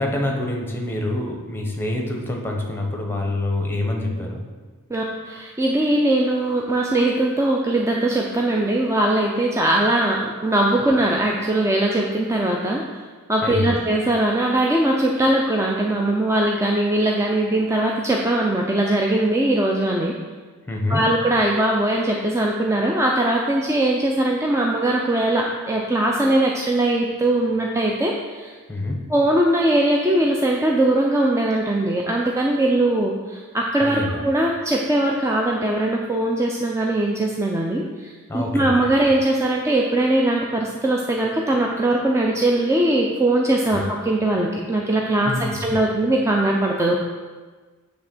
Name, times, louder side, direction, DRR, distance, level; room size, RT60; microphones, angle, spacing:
voice 1, 0.0-4.4 13.4-13.8 20.7-21.0 28.7-29.0 33.8-34.2 38.3-38.7 43.7-43.8 45.2-45.6, left 1 dB, 10° left, 1 dB, 0.9 m, -26 dB
voice 2, 4.9-13.0 13.3-20.1 20.9-28.5 29.1-47.1, right 1 dB, 15° right, -1 dB, 0.5 m, -21 dB
8.8 x 3.4 x 6.0 m, 1.4 s
head